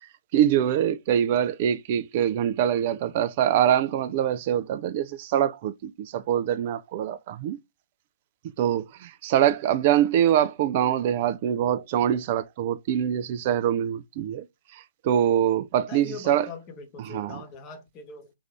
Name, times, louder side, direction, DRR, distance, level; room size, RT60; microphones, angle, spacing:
voice 1, 0.3-7.6 8.6-14.5 14.7-16.5 17.1-17.4, right 10 dB, 40° right, 0.4 m, -24 dB
voice 2, 15.9-18.3, left 5 dB, 25° left, 1.1 m, -41 dB
4.7 x 2.6 x 3.3 m
figure-of-eight pair, 125°, 0 cm